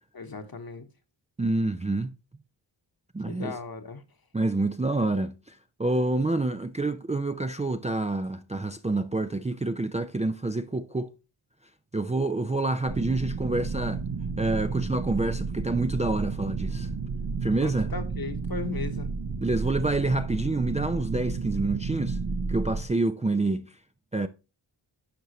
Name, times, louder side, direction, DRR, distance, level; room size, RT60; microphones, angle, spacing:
voice 1, 0.1-0.9 3.3-4.0 17.6-19.1, left 4 dB, 50° left, 1.3 m, -37 dB
voice 2, 1.4-2.1 3.1-3.5 4.3-11.1 11.9-14.0 14.4-16.9 17.4-17.9 19.4-22.2 22.5-23.7 24.1-24.3, right 2 dB, 15° right, 0.5 m, -27 dB
sound 1, 12.9-22.9, right 4 dB, 60° right, 1.2 m, -32 dB
10.5 x 5.4 x 3.1 m
cardioid pair, 55°, 48 cm